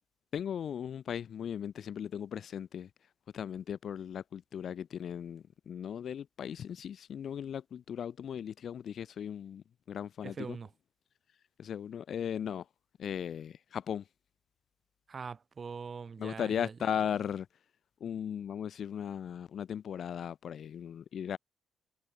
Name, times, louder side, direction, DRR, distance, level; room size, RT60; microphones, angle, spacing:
voice 1, 0.3-2.9 3.3-10.6 11.6-12.7 13.0-14.0 16.2-17.5 18.0-21.4, left 8 dB, 60° left, 0.4 m, -37 dB
voice 2, 10.2-10.7 15.1-16.9, right 5 dB, 40° right, 3.2 m, -42 dB
cardioid pair, 90°, 0 cm